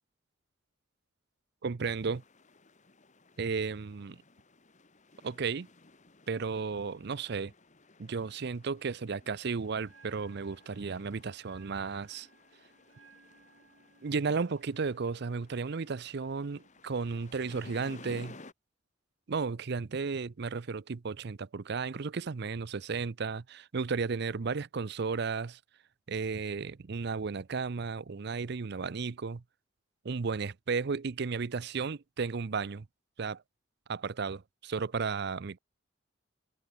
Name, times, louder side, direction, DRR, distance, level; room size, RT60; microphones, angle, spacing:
voice 1, 1.6-2.2 3.4-4.2 5.2-5.7 6.3-7.5 8.0-12.3 14.0-18.4 19.3-25.6 26.1-29.4 30.0-32.9 33.2-33.4 33.9-35.6, right 5 dB, 55° right, 0.6 m, -34 dB
sound 1, 1.8-18.5, left 2 dB, 40° left, 2.2 m, -56 dB
Bell, 9.8-17.8, right 4 dB, 85° right, 6.9 m, -64 dB
head